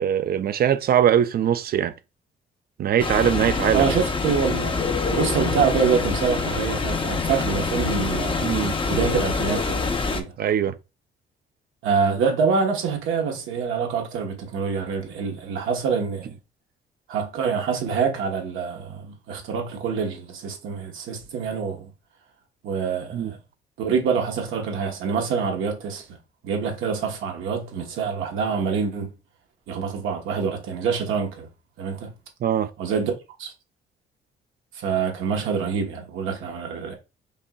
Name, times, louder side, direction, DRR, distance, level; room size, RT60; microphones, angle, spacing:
voice 1, 0.0-1.9 2.8-4.0 8.4-8.8 10.4-10.8 23.1-23.3 32.4-32.7, right 9 dB, 50° right, 0.4 m, -21 dB
sound 1, 3.0-10.2, left 4 dB, 25° left, 0.6 m, -25 dB
voice 2, 3.7-8.6 8.9-10.3 11.8-16.3 17.1-21.9 22.6-23.4 23.8-26.1 26.4-29.1 29.7-31.5 31.8-32.1 32.8-33.1 33.4-33.5 34.7-36.9, right 6 dB, 90° right, 1.1 m, -26 dB
5.3 x 2.8 x 2.3 m
cardioid pair, 90°, 20 cm